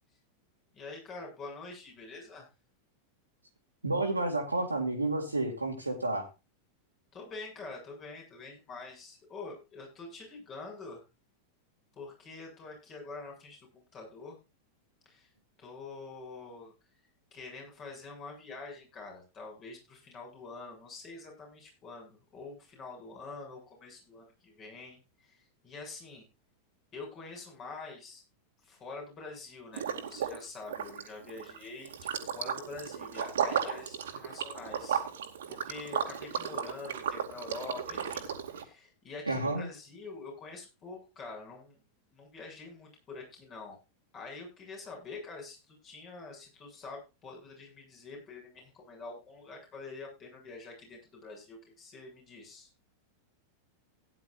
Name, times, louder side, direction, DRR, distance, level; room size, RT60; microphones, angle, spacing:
voice 1, 0.7-2.5 7.1-11.0 12.0-14.4 15.1-15.3 15.6-16.7 17.3-25.4 25.6-26.2 26.9-28.2 28.6-35.0 35.5-41.8 42.1-43.8 44.1-52.7, left 3 dB, 30° left, 1 dB, 7.3 m, -46 dB
voice 2, 3.8-6.3 39.3-39.7, right 2 dB, 80° right, 1 dB, 2.3 m, -30 dB
Liquid, 29.7-30.4 30.7-38.6, right 8 dB, 60° right, 2.2 m, -35 dB
17.0 x 10.5 x 2.6 m, 0.27 s
figure-of-eight pair, 90°, 0 cm